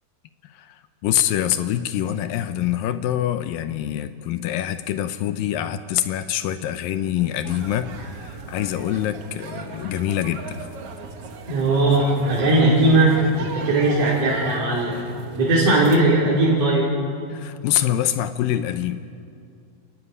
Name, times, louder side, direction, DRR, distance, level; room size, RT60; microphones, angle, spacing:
voice 1, 0.4-10.6 17.3-19.2, left 11 dB, 75° left, 11 dB, 2.2 m, -25 dB
sound 1, 7.4-16.0, right 5 dB, 55° right, 1.7 m, -37 dB
voice 2, 11.5-15.0 15.3-16.9, right 2 dB, 40° right, -6 dB, 3.6 m, -18 dB
28.0 x 14.0 x 9.7 m, 2.4 s
omnidirectional pair, 4.6 m